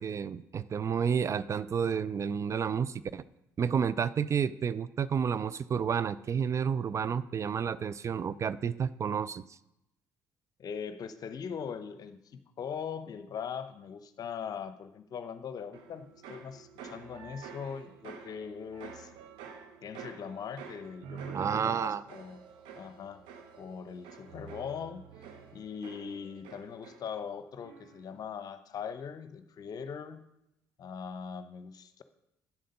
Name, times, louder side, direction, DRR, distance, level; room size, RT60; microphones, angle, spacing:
voice 1, 0.0-3.2 3.6-9.4 21.3-22.0, right 7 dB, 35° right, 17 dB, 0.4 m, -30 dB
voice 2, 10.6-19.1 19.8-22.4 22.8-23.2 23.6-25.0 25.5-30.2 30.8-32.0, left 7 dB, 45° left, 12 dB, 0.8 m, -41 dB
sound 1, 15.7-27.3 27.6-28.1, right 6 dB, 65° right, 1.1 m, -48 dB
10.0 x 7.6 x 5.3 m, 0.85 s
figure-of-eight pair, 55°, 9 cm